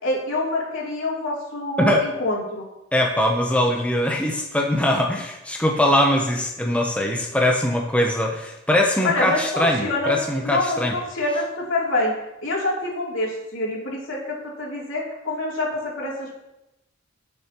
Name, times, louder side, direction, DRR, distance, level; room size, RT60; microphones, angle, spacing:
voice 1, 0.0-2.6 9.0-10.1 10.4-12.1 12.4-16.3, left 2 dB, 70° left, -3 dB, 3.2 m, -26 dB
voice 2, 2.9-10.9, left 1 dB, 5° left, 0 dB, 0.8 m, -21 dB
17.5 x 7.0 x 3.0 m, 0.92 s
head